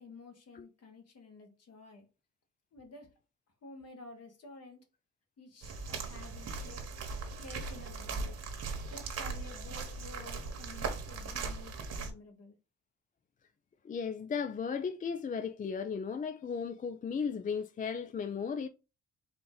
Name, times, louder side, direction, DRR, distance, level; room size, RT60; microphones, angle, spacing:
voice 1, 0.0-2.1 2.7-3.1 3.6-4.8 5.4-6.9 7.4-8.4 8.9-12.5, left 3 dB, 55° left, 1.7 m, -51 dB
sound 1, 5.6-12.1, right 4 dB, 55° right, 1.2 m, -39 dB
voice 2, 13.8-18.7, left 6 dB, 30° left, 0.4 m, -35 dB
4.2 x 2.7 x 3.9 m
cardioid pair, 90°, 30 cm